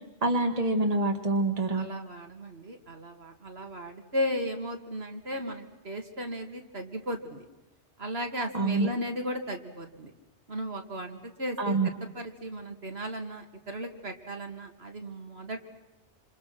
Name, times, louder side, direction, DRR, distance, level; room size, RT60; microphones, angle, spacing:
voice 1, 0.2-1.9 8.5-8.9 11.6-11.9, right 2 dB, 35° right, 4 dB, 2.2 m, -26 dB
voice 2, 1.7-7.4 8.0-10.1 10.5-15.6, equal, 60° right, 4 dB, 2.8 m, -35 dB
28.5 x 28.0 x 6.1 m, 1.0 s
omnidirectional pair, 1.2 m